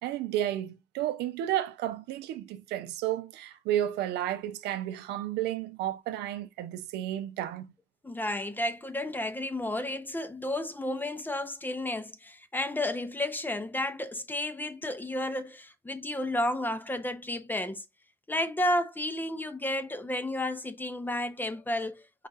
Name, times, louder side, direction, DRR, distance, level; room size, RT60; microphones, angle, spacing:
voice 1, 0.0-7.7, right 12 dB, 85° right, 0.6 m, -32 dB
voice 2, 8.0-17.8 18.3-22.3, left 1 dB, 10° left, 0.5 m, -32 dB
4.7 x 2.4 x 4.0 m
cardioid pair, 110°, 17 cm